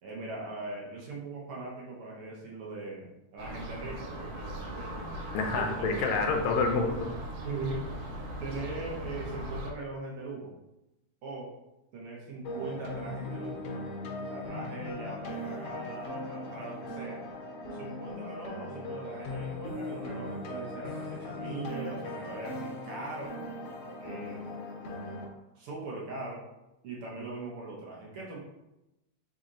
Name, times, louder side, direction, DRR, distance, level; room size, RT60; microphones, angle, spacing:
voice 1, 0.0-5.1 5.5-5.7 6.0-6.2 7.4-7.9 8.4-10.5 11.2-11.5 11.9-13.7 14.3-17.2 17.7-23.4 24.0-24.6 25.5-26.4 26.8-28.4, right 3 dB, 70° right, -3 dB, 1.4 m, -40 dB
sound 1, 3.4-9.7, equal, 85° right, 2.2 m, -39 dB
voice 2, 5.3-7.1, left 4 dB, 80° left, 3 dB, 1.9 m, -28 dB
sound 2, 12.4-25.2, left 1 dB, 65° left, 1.8 m, -39 dB
4.9 x 4.2 x 2.5 m, 0.92 s
omnidirectional pair, 3.4 m